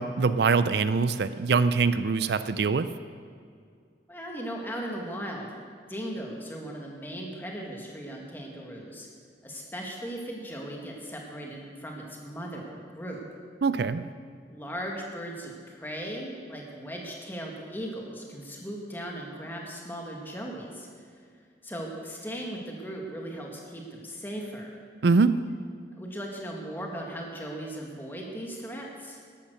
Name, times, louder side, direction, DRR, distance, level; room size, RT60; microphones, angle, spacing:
voice 1, 0.0-2.9 13.6-14.0 25.0-25.4, right 4 dB, 70° right, 13 dB, 0.5 m, -23 dB
voice 2, 4.1-5.6 5.9-9.1 9.4-13.2 14.5-21.1 21.6-24.8 26.0-29.2, equal, 10° left, -1 dB, 2.0 m, -38 dB
13.5 x 11.5 x 6.4 m, 2.2 s
head